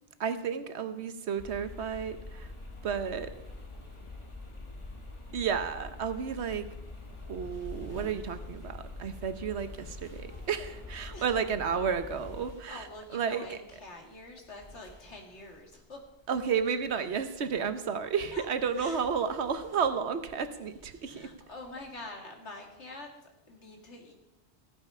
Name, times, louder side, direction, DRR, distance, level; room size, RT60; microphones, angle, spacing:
voice 1, 0.2-2.5 2.8-3.3 5.3-6.7 7.3-13.6 16.3-21.3, right 6 dB, 75° right, 10 dB, 1.2 m, -32 dB
sound 1, 1.4-12.5, left 2 dB, 25° left, 1.5 m, -45 dB
sound 2, 6.5-22.1, right 1 dB, 5° left, 5.2 m, -56 dB
voice 2, 12.7-16.0 17.9-18.0 18.3-18.5 18.7-19.0 21.1-23.1 23.5-24.1, left 2 dB, 85° left, 2 dB, 2.3 m, -46 dB
15.0 x 9.0 x 5.5 m, 0.96 s
omnidirectional pair, 1.1 m